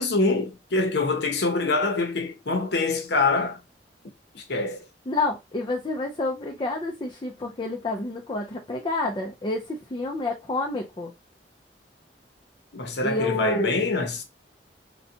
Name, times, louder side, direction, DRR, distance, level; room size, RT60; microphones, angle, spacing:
voice 1, 0.0-3.6 4.3-4.8 12.7-14.2, left 3 dB, 70° left, 0.8 m, -25 dB
voice 2, 5.1-11.1 13.0-13.8, left 2 dB, 25° left, 0.5 m, -29 dB
3.9 x 2.2 x 2.7 m
head